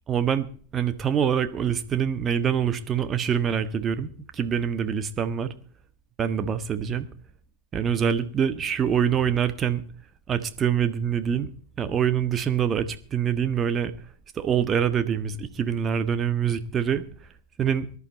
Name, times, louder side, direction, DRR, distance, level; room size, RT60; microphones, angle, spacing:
voice 1, 0.1-0.5 0.7-5.5 6.2-7.1 7.7-9.8 10.3-11.5 11.8-13.9 14.3-17.0 17.6-17.9, right 8 dB, 25° right, 10 dB, 1.5 m, -25 dB
20.0 x 11.5 x 4.2 m, 0.42 s
figure-of-eight pair, 90°, 0 cm